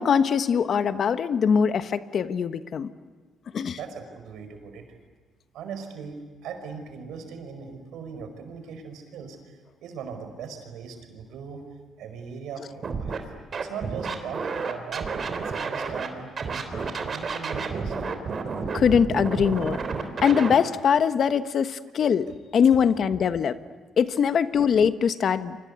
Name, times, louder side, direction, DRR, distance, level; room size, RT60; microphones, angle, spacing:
voice 1, 0.0-2.9 3.5-3.8 16.7-16.9 18.7-19.8 20.2-23.6 24.0-25.7, left 7 dB, 60° left, 11 dB, 1.2 m, -22 dB
voice 2, 3.7-4.9 5.5-11.7 12.0-17.9, right 6 dB, 85° right, 7 dB, 5.0 m, -39 dB
Scratching (performance technique), 12.8-13.2 13.5-16.1 16.4-20.5, right 5 dB, 45° right, 3.5 m, -30 dB
29.0 x 24.5 x 8.3 m, 1.4 s
cardioid pair, 90°, 0 cm